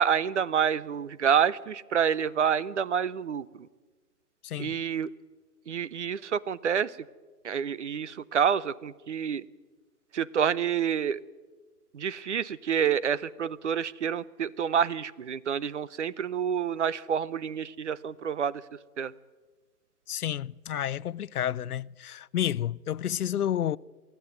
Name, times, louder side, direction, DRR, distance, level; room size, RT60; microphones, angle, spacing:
voice 1, 0.0-3.5 4.6-5.1 5.7-6.9 7.4-9.4 10.1-11.2 11.9-18.6 19.0-19.1, right 8 dB, 50° right, 0.7 m, -28 dB
voice 2, 4.4-4.8 20.1-23.8, left 10 dB, 65° left, 0.6 m, -30 dB
23.5 x 14.5 x 9.3 m
hypercardioid pair, 155°, 48 cm